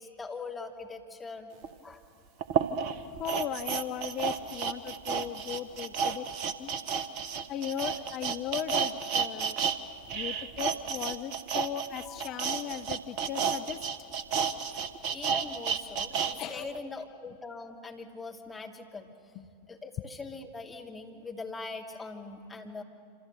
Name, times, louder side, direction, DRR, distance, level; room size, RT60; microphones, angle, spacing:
voice 1, 0.0-1.5 1.8-2.0 12.0-12.4 15.1-19.1 19.7-22.8, left 3 dB, 10° left, 1 dB, 2.7 m, -42 dB
sound 1, 1.6-1.7 2.4-9.8 10.0-16.3 16.7-16.8, right 7 dB, 45° right, 1.3 m, -31 dB
voice 2, 3.2-6.3 6.6-6.7 7.5-9.6 10.1-13.8 16.4-16.7 19.4-19.5, left 9 dB, 35° left, 9 dB, 0.8 m, -37 dB
27.0 x 27.0 x 6.9 m, 2.4 s
figure-of-eight pair, 90°, 0 cm